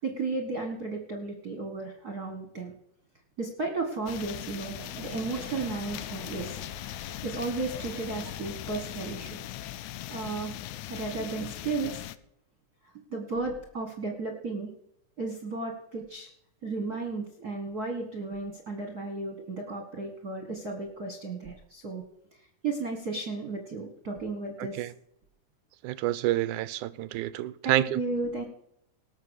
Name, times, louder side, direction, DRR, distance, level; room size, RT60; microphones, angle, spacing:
voice 1, 0.0-2.7 3.4-9.4 10.1-10.5 10.9-12.1 13.1-14.7 15.2-16.3 16.6-22.0 22.6-24.9 27.6-28.4, right 3 dB, 40° right, 1.5 m, -34 dB
sound 1, 4.1-12.2, left 13 dB, 75° left, 2.0 m, -39 dB
Laughter, 4.2-10.1, right 7 dB, 55° right, 1.5 m, -49 dB
voice 2, 24.6-24.9 25.8-28.0, right 14 dB, 90° right, 2.2 m, -28 dB
18.5 x 6.8 x 6.4 m
omnidirectional pair, 3.5 m